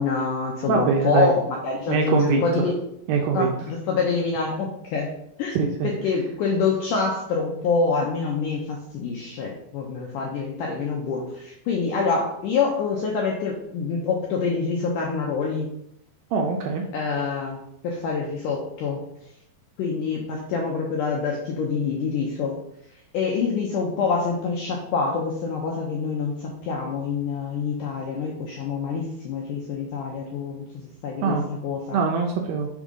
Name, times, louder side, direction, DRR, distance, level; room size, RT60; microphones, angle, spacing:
voice 1, 0.0-2.8 3.3-5.1 5.4-5.5 5.8-15.7 16.9-19.0 19.8-22.6 23.1-31.4 31.6-32.0, left 4 dB, 85° left, -1 dB, 1.9 m, -26 dB
voice 2, 0.7-1.3 1.9-2.6 3.1-3.5 5.5-5.9 16.3-16.9 31.2-31.4 31.9-32.7, right 5 dB, 80° right, 2 dB, 2.2 m, -23 dB
6.3 x 3.7 x 5.3 m, 0.74 s
omnidirectional pair, 4.8 m